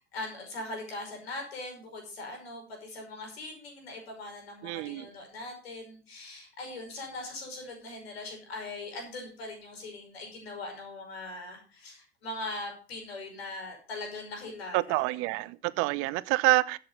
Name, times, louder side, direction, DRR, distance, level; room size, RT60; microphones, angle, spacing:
voice 1, 0.1-15.0, left 2 dB, 65° left, 5.7 m, -41 dB
voice 2, 4.6-5.1 14.7-16.8, right 21 dB, 45° right, 0.6 m, -27 dB
13.0 x 8.1 x 5.4 m
figure-of-eight pair, 75°, 32 cm